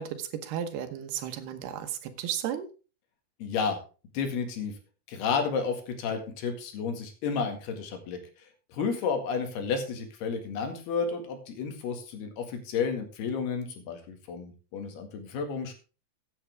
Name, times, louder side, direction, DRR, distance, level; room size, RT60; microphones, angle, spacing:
voice 1, 0.0-2.7, right 9 dB, 85° right, 9 dB, 3.2 m, -34 dB
voice 2, 3.4-3.8 4.1-4.7 5.1-8.2 8.7-15.7, left 5 dB, 85° left, 5 dB, 3.9 m, -31 dB
14.5 x 8.8 x 3.5 m, 0.34 s
omnidirectional pair, 4.5 m